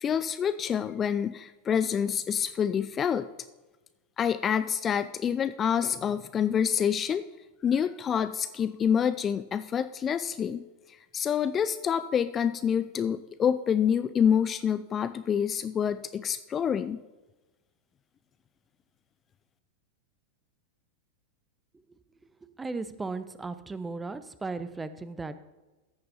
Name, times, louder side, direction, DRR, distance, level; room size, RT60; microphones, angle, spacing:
voice 1, 0.0-3.3 4.2-7.3 7.6-17.0, left 8 dB, 25° left, 12 dB, 0.3 m, -27 dB
voice 2, 22.4-25.4, right 3 dB, 10° right, 13 dB, 0.7 m, -36 dB
14.5 x 6.7 x 4.2 m, 1.2 s
figure-of-eight pair, 90°, 0 cm